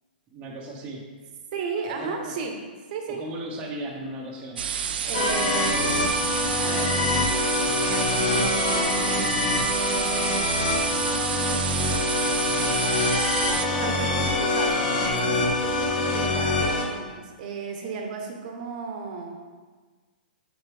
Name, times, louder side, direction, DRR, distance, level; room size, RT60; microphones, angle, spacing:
voice 1, 0.3-1.1 2.0-2.4 3.1-4.6, right 1 dB, 25° right, -1 dB, 0.9 m, -36 dB
voice 2, 1.5-2.6 2.9-3.2 5.0-6.1 6.5-7.0 7.6-9.2 10.7-11.5 13.2-19.4, right 4 dB, 50° right, 3 dB, 1.0 m, -34 dB
sound 1, 4.6-13.7, right 7 dB, 75° right, 0.5 m, -29 dB
sound 2, 5.1-16.8, left 2 dB, 50° left, 1.5 m, -25 dB
6.6 x 5.7 x 3.5 m, 1.4 s
hypercardioid pair, 140°, 5 cm